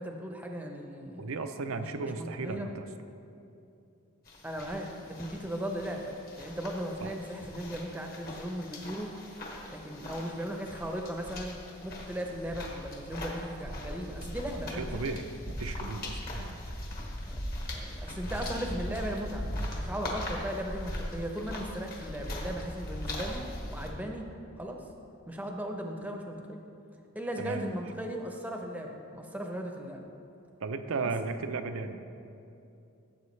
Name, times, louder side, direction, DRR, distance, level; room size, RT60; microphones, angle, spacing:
voice 1, 0.0-1.3 1.7-2.7 4.4-9.1 9.7-15.2 17.3-17.4 17.7-23.4 23.7-24.3 24.6-24.8 25.3-26.6 27.1-30.0, equal, 5° right, 2 dB, 0.7 m, -37 dB
voice 2, 1.2-2.8 7.0-7.1 14.7-16.6 27.4-27.8 30.6-32.0, right 3 dB, 70° right, 8 dB, 0.6 m, -35 dB
sound 1, 4.3-23.9, left 1 dB, 45° left, 1.5 m, -39 dB
15.0 x 7.4 x 3.2 m, 2.7 s
head